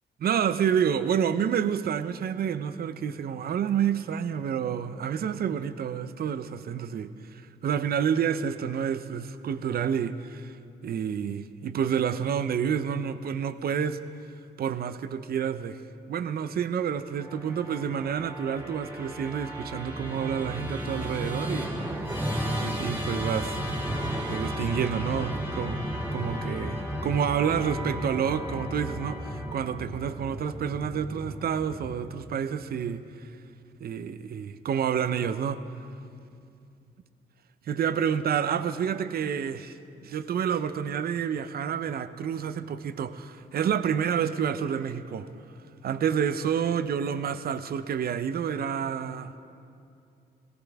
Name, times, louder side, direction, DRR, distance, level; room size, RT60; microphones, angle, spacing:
voice 1, 0.2-10.5 10.8-14.0 14.6-15.8 16.1-21.8 22.6-23.6 24.3-25.8 26.1-33.0 33.8-35.7 37.7-39.8 40.0-45.3 45.8-49.4, right 8 dB, 60° right, 0.7 m, -29 dB
Musical instrument, 17.1-32.4, equal, 10° right, 2.5 m, -34 dB
22.0 x 17.0 x 3.5 m
cardioid pair, 95°, 18 cm